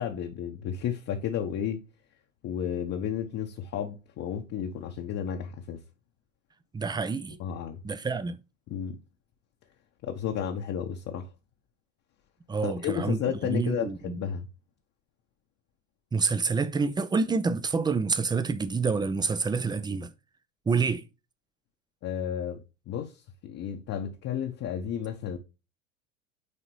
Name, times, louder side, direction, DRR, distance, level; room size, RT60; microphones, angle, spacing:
voice 1, 0.0-1.8 2.4-5.8 7.4-7.8 8.7-9.0 10.0-11.3 12.6-14.5 22.0-23.1 23.4-25.4, left 8 dB, 40° left, 1.1 m, -32 dB
voice 2, 6.7-7.4 7.8-8.4 12.5-13.2 13.5-14.2 16.1-20.1 20.7-21.0, right 4 dB, 10° right, 0.6 m, -27 dB
9.7 x 3.9 x 3.2 m
hypercardioid pair, 80°, 39 cm